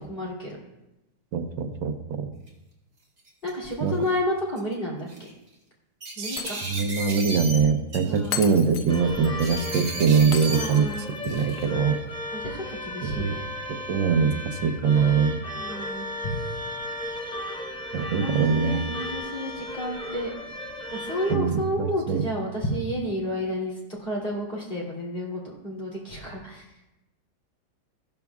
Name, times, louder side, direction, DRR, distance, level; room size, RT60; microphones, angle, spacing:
voice 1, 0.1-0.6 3.4-5.1 6.2-6.6 8.0-8.5 10.5-11.1 12.3-13.4 15.5-16.3 18.1-20.3 20.9-26.6, equal, 30° left, -4 dB, 3.1 m, -31 dB
voice 2, 1.3-2.3 3.8-3.9 6.2-6.4 6.7-10.9 11.2-12.0 13.2-13.3 13.9-15.4 17.9-18.8 21.3-22.2, right 6 dB, 80° right, 6 dB, 1.5 m, -23 dB
sound 1, 2.5-2.6 3.2-3.7 4.6-4.7 5.1-5.3 6.0-7.6 7.9-8.5 9.4-10.7 11.2-11.7, right 1 dB, 45° right, 2.8 m, -35 dB
Shatter, 6.4-7.0 7.3-7.4 8.3-9.3 10.3-11.3, left 9 dB, 75° left, 0.7 m, -36 dB
sound 2, 8.9-21.3, left 1 dB, 5° left, 0.4 m, -35 dB
14.5 x 12.5 x 2.4 m, 0.96 s
omnidirectional pair, 2.0 m